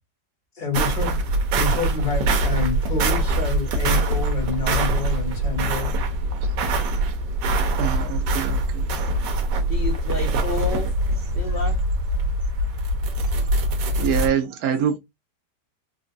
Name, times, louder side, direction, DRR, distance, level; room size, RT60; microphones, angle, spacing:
voice 1, 0.5-1.2 1.5-5.9 13.8-13.9, left 5 dB, 35° left, 1.0 m, -28 dB
sound 1, 0.7-14.3, right 1 dB, 85° right, 1.4 m, -23 dB
voice 2, 7.8-8.9 13.3-13.5 14.0-15.0, right 8 dB, 65° right, 1.1 m, -25 dB
voice 3, 9.7-11.8, left 2 dB, 65° left, 0.5 m, -31 dB
3.9 x 2.3 x 2.5 m
omnidirectional pair, 1.8 m